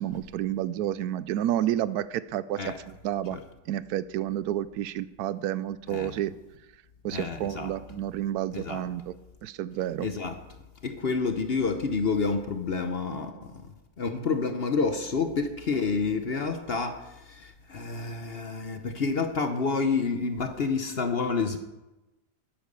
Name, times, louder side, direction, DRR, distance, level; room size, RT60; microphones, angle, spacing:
voice 1, 0.0-2.7 3.0-3.4 3.7-6.3 7.0-9.1 9.4-10.1, right 12 dB, 75° right, 16 dB, 1.0 m, -30 dB
voice 2, 7.1-7.7 8.5-8.8 10.0-10.4 10.8-13.3 14.0-17.0 17.7-21.6, left 4 dB, 45° left, 7 dB, 0.8 m, -28 dB
10.0 x 8.9 x 6.6 m, 1.0 s
omnidirectional pair, 1.8 m